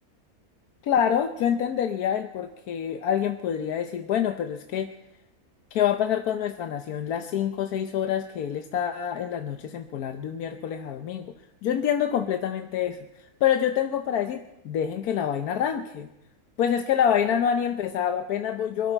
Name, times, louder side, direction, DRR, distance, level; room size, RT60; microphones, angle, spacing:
voice 1, 0.8-4.9 5.7-11.3 11.6-16.1 16.6-18.9, left 9 dB, 85° left, 7 dB, 1.3 m, -26 dB
26.0 x 12.5 x 4.4 m, 0.89 s
omnidirectional pair, 1.6 m